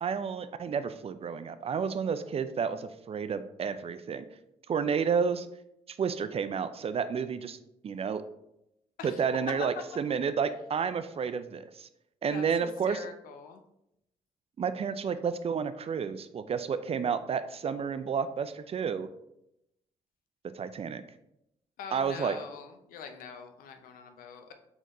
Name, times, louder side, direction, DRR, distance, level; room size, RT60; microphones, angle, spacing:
voice 1, 0.0-4.3 4.7-5.5 5.9-7.6 7.8-8.2 9.0-11.9 12.2-13.0 14.6-19.1 20.6-21.0 21.9-22.4, right 6 dB, 40° right, 11 dB, 0.4 m, -31 dB
voice 2, 12.3-13.6 21.8-24.5, left 6 dB, 75° left, 7 dB, 0.6 m, -44 dB
4.0 x 3.9 x 3.1 m, 0.82 s
hypercardioid pair, 50°, 15 cm